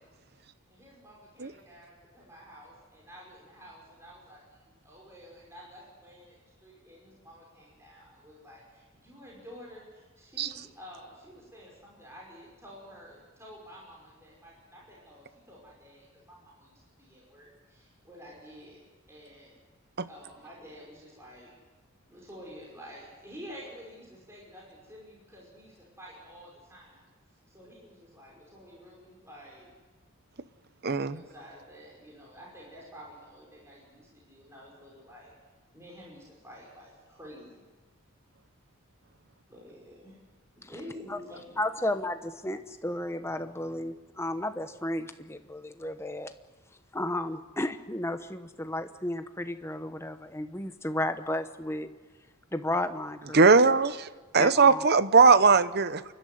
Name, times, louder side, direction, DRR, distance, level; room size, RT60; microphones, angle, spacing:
voice 1, 0.3-18.8 19.1-19.6 20.1-21.5 22.1-27.0 27.5-29.7 31.0-35.3 35.7-37.7 39.5-40.2 40.6-41.6, equal, 15° right, 5.4 m, -50 dB
voice 2, 30.8-31.2 53.3-54.1 54.3-56.0, right 4 dB, 50° right, 0.8 m, -20 dB
voice 3, 41.6-46.3 46.9-51.9 52.5-53.5 54.4-54.8, left 1 dB, 10° left, 1.0 m, -33 dB
28.5 x 12.5 x 9.4 m
head